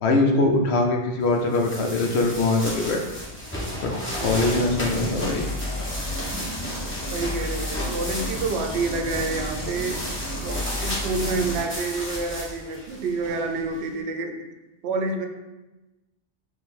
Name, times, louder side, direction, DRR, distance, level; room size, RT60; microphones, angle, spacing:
voice 1, 0.0-3.0 3.8-3.9 4.2-5.5, left 2 dB, 70° left, 3 dB, 0.9 m, -22 dB
sound 1, 1.3-13.8, equal, 10° left, 1.1 m, -34 dB
sound 2, 4.2-11.6, equal, 25° left, 0.5 m, -32 dB
voice 2, 4.2-4.8 7.1-10.0 10.4-14.4 14.8-15.3, right 3 dB, 70° right, 5 dB, 0.8 m, -28 dB
4.3 x 2.6 x 4.0 m, 1.1 s
omnidirectional pair, 1.2 m